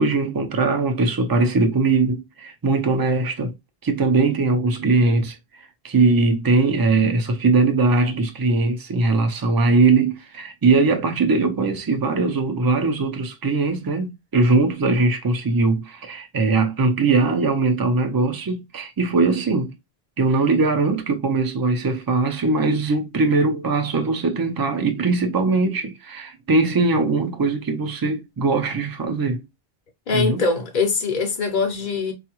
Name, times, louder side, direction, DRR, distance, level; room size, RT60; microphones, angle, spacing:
voice 1, 0.0-3.5 3.8-5.4 5.8-19.7 20.2-29.4 30.1-30.4, right 3 dB, 30° right, 0.5 m, -20 dB
voice 2, 30.1-32.1, left 4 dB, 55° left, 0.7 m, -22 dB
4.5 x 2.4 x 2.9 m
omnidirectional pair, 1.0 m